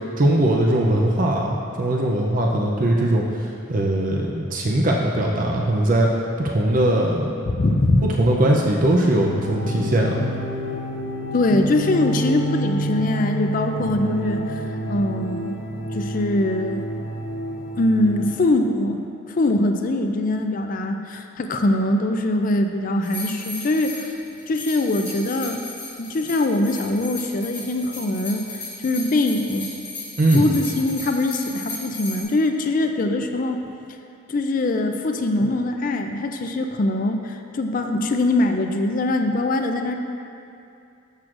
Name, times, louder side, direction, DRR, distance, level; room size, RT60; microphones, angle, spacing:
voice 1, 0.2-6.1 6.4-7.3 8.0-10.3 30.2-30.5, right 1 dB, 40° right, -1 dB, 0.5 m, -20 dB
voice 2, 7.5-8.1 11.3-15.6 15.9-16.8 17.8-19.0 19.3-24.2 24.5-25.6 26.0-28.5 28.8-29.7 30.3-33.6 34.3-40.0, left 2 dB, 40° left, 5 dB, 0.4 m, -22 dB
sound 1, 9.2-18.3, right 1 dB, 60° left, 1.0 m, -29 dB
sound 2, 23.0-32.2, left 2 dB, 15° left, 1.8 m, -35 dB
12.0 x 6.2 x 2.5 m, 2.6 s
head